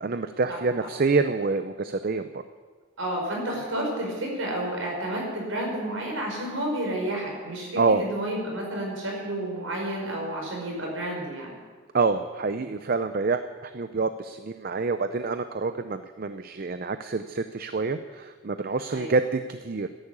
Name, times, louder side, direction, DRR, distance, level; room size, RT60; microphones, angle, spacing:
voice 1, 0.0-2.4 7.8-8.0 11.9-19.9, right 4 dB, 45° right, 10 dB, 0.5 m, -27 dB
voice 2, 3.0-11.5 18.9-19.1, right 1 dB, 85° right, -1 dB, 5.6 m, -30 dB
14.5 x 10.5 x 8.7 m, 1.5 s
head